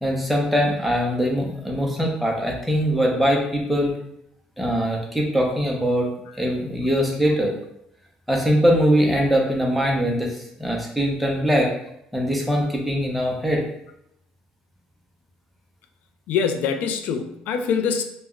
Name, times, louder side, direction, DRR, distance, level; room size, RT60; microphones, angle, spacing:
voice 1, 0.0-3.9 4.6-6.1 6.4-7.6 8.3-11.7 12.1-13.6, equal, ahead, -1 dB, 0.6 m, -22 dB
voice 2, 16.3-18.0, left 6 dB, 70° left, 7 dB, 0.3 m, -24 dB
2.3 x 2.1 x 3.6 m, 0.77 s
cardioid pair, 125°, 3 cm